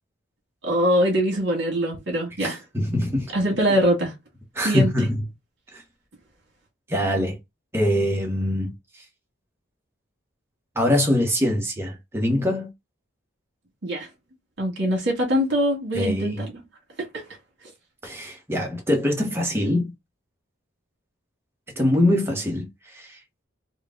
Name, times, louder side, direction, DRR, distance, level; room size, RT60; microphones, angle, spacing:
voice 1, 0.6-2.6 3.3-4.1 4.6-5.1 13.8-14.1 14.6-16.5 17.1-17.2, equal, 55° right, 1.9 m, -23 dB
voice 2, 2.4-3.3 4.5-5.2 5.7-5.8 6.9-7.4 7.7-8.7 10.7-12.7 15.9-16.4 18.0-19.9 21.8-23.2, left 1 dB, 10° right, 1.1 m, -23 dB
4.4 x 2.3 x 3.7 m
head